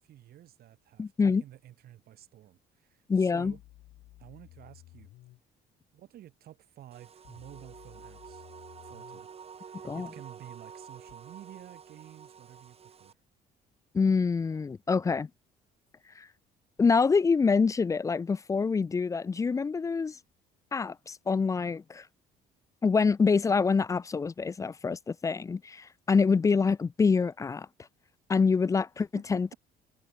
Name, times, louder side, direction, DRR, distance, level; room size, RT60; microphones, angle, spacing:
voice 1, 0.0-3.6 4.2-5.1 5.9-8.4 8.8-9.3 9.6-13.1 29.1-29.6, right 12 dB, 65° right, 4.3 m, -51 dB
voice 2, 1.0-1.4 3.1-3.5 9.8-10.1 13.9-15.3 16.2-16.3 16.8-20.2 20.7-22.0 22.8-27.7 28.3-29.5, left 5 dB, 20° left, 0.4 m, -26 dB
sound 1, 3.4-5.4 7.2-9.2 11.1-11.2, left 16 dB, 80° left, 2.4 m, -55 dB
sound 2, 6.9-13.1, right 7 dB, 35° right, 2.4 m, -49 dB
cardioid pair, 110°, 17 cm